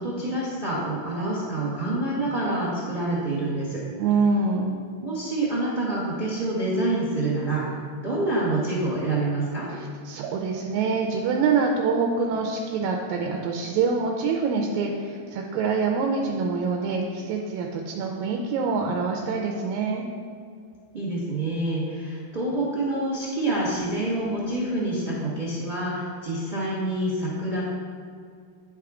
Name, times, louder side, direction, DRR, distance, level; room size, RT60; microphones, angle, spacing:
voice 1, 0.0-3.8 5.0-7.8 8.0-9.7 20.9-27.6, right 2 dB, 55° right, -6 dB, 0.5 m, -27 dB
voice 2, 4.0-4.8 9.7-20.0, right 4 dB, 85° right, 2 dB, 2.0 m, -25 dB
9.8 x 3.6 x 4.7 m, 2.3 s
omnidirectional pair, 3.3 m